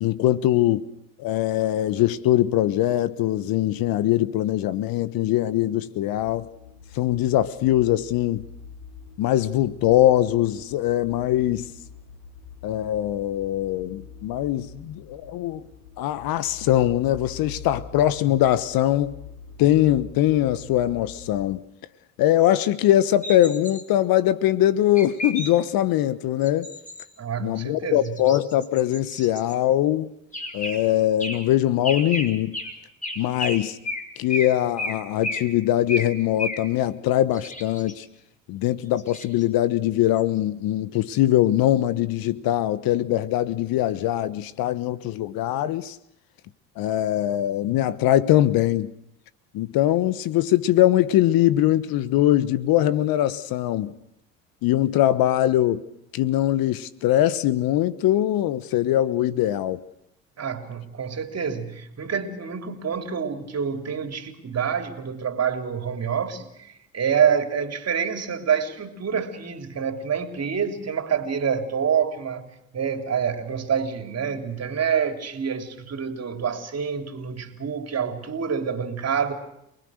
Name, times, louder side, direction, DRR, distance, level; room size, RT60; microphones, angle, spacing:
voice 1, 0.0-0.9 1.2-6.5 6.9-8.4 9.2-11.7 12.6-15.6 16.0-19.1 19.6-21.6 22.2-26.7 27.4-30.1 30.5-32.6 33.2-33.8 34.2-38.0 38.5-46.0 46.8-48.9 49.5-53.9 54.6-55.8 56.1-59.8, left 13 dB, 60° left, 1.2 m, -22 dB
sound 1, 6.2-21.4, left 6 dB, 85° left, 3.3 m, -44 dB
sound 2, 23.2-23.8 25.0-25.5 26.4-27.0 28.0-29.5 30.3-30.8 31.2-31.4 31.8-32.3 32.5-32.7 33.0-33.6 33.8-34.0 34.3-34.5 34.8-35.0 35.2-35.4 35.9-36.1 36.4-36.6 37.3-37.9 39.0-39.4 40.1-40.2, left 1 dB, 20° left, 5.6 m, -32 dB
voice 2, 27.2-28.2 60.4-79.3, right 7 dB, 40° right, 3.7 m, -27 dB
28.0 x 20.0 x 6.6 m
hypercardioid pair, 65°, 41 cm